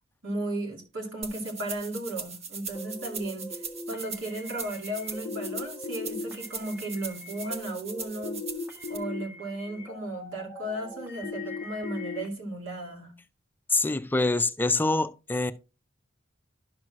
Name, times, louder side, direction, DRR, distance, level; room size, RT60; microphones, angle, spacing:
voice 1, 0.2-3.6 3.9-8.4 8.9-13.1, right 1 dB, 75° right, 2.5 m, -35 dB
sound 1, 1.2-9.0, right 5 dB, 35° right, 0.9 m, -40 dB
sound 2, 2.7-12.3, left 1 dB, 10° right, 1.2 m, -44 dB
sound 3, 5.2-6.2 8.2-9.2 11.2-12.2, left 6 dB, 90° left, 0.4 m, -36 dB
voice 2, 13.7-15.5, left 3 dB, 10° left, 0.4 m, -25 dB
11.5 x 6.1 x 2.5 m
head